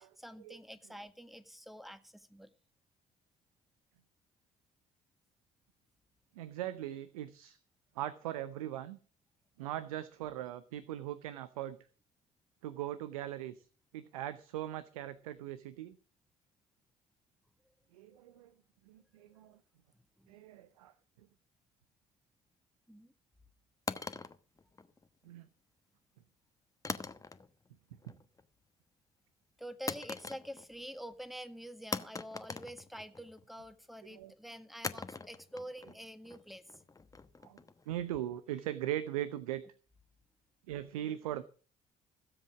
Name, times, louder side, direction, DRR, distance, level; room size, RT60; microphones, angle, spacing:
voice 1, 0.0-2.5 18.1-18.4 20.2-20.3 22.9-23.1 29.6-36.8, equal, ahead, 1.7 m, -47 dB
voice 2, 6.4-7.6 7.9-9.0 9.6-11.8 12.6-13.7 13.9-16.0 17.9-18.5 18.9-19.6 20.3-20.9 25.2-25.5 34.0-34.3 37.4-37.6 37.9-39.6 40.7-41.4, right 12 dB, 75° right, 0.7 m, -40 dB
sound 1, 23.9-25.3 26.8-27.7 28.0-28.5 29.9-30.8 31.1-31.2 31.9-33.4 34.8-37.9, left 3 dB, 20° left, 1.1 m, -42 dB
17.0 x 7.9 x 6.1 m
figure-of-eight pair, 50°, 18 cm